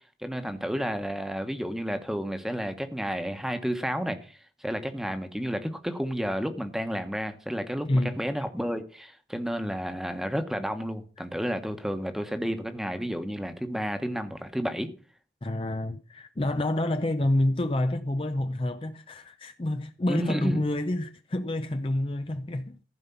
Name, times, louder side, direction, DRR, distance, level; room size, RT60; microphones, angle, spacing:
voice 1, 0.2-7.9 8.2-14.9 20.1-20.6, equal, ahead, 1.2 m, -31 dB
voice 2, 7.9-8.2 11.2-11.3 15.4-22.8, left 1 dB, 30° left, 0.5 m, -28 dB
15.0 x 5.3 x 7.0 m
head